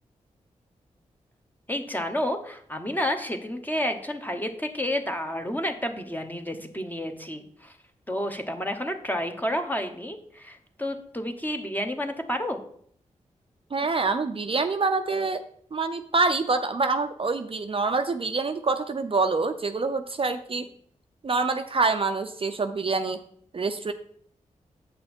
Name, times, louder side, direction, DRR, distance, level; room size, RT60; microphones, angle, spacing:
voice 1, 1.7-7.7 8.1-12.6, left 1 dB, 15° left, 5 dB, 1.2 m, -30 dB
voice 2, 13.7-15.4 15.7-20.7 21.2-23.2 23.5-23.9, right 3 dB, 40° right, 8 dB, 0.5 m, -26 dB
7.8 x 5.5 x 4.4 m, 0.63 s
cardioid pair, 45°, 14 cm